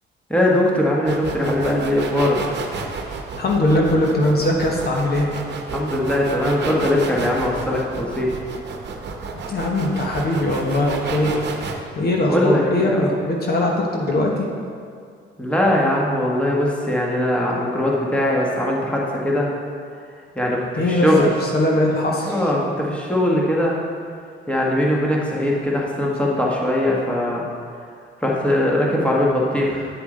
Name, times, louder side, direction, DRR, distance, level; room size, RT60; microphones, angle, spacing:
voice 1, 0.3-2.4 5.7-8.3 12.3-13.0 15.4-19.5 20.3-20.6 20.9-21.3 22.2-23.7 24.5-27.4 28.2-29.9, left 1 dB, 5° left, -3 dB, 1.5 m, -20 dB
sound 1, 1.1-11.7, right 4 dB, 60° right, 0.9 m, -31 dB
voice 2, 3.4-5.3 9.5-11.3 11.9-14.4 20.8-22.4, left 1 dB, 50° left, -1 dB, 1.2 m, -20 dB
8.2 x 6.9 x 3.9 m, 2.2 s
cardioid pair, 90°, 20 cm